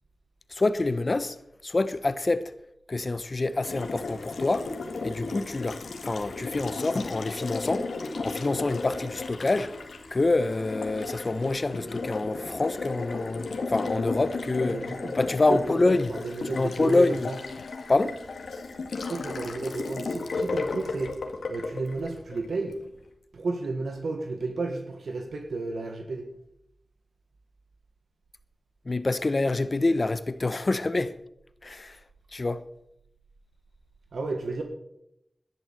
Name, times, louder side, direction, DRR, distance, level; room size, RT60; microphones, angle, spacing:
voice 1, 0.5-1.4 1.6-2.5 2.9-4.7 5.0-7.9 8.2-9.7 10.1-14.8 15.1-16.1 16.6-17.3 17.9-18.2 28.8-31.2 31.6-32.0 32.3-32.6, left 2 dB, 50° left, 1.0 m, -26 dB
Water tap faucet, 3.6-22.8, left 3 dB, 90° left, 1.9 m, -35 dB
voice 2, 14.6-15.1 15.5-15.6 15.8-17.4 19.0-21.1 21.5-22.8 23.3-26.3 34.1-34.6, right 3 dB, 85° right, 1.7 m, -32 dB
12.5 x 11.0 x 6.8 m
cardioid pair, 45°, 0 cm